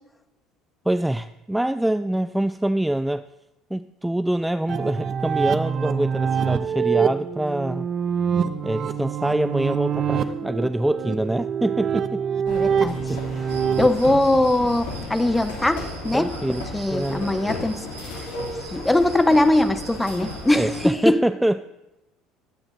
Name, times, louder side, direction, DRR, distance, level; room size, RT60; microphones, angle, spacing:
voice 1, 0.9-3.3 3.7-7.9 8.6-12.2 13.1-13.5 16.1-17.3 20.5-21.6, right 1 dB, 5° right, 13 dB, 0.3 m, -25 dB
guitar loop, 4.7-13.9, right 7 dB, 45° right, 0.7 m, -25 dB
sound 1, 12.5-20.9, left 2 dB, 70° left, 2.7 m, -34 dB
voice 2, 12.5-13.0 13.8-16.4 16.7-17.8 18.7-21.2, left 1 dB, 10° left, 12 dB, 0.7 m, -21 dB
Cricket, 13.5-20.9, right 6 dB, 85° right, 1.0 m, -45 dB
20.5 x 8.8 x 2.7 m, 1.0 s
hypercardioid pair, 65°, 0 cm